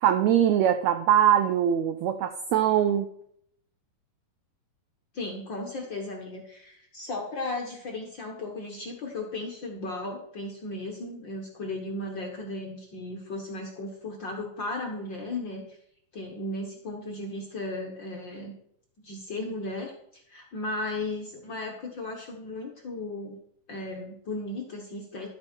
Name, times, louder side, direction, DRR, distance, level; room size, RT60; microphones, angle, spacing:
voice 1, 0.0-3.1, right 10 dB, 90° right, 8 dB, 1.6 m, -22 dB
voice 2, 5.1-15.8 16.1-18.5 19.0-23.4 23.7-25.3, left 2 dB, 55° left, 0 dB, 1.3 m, -35 dB
12.5 x 8.7 x 4.5 m, 0.70 s
omnidirectional pair, 3.9 m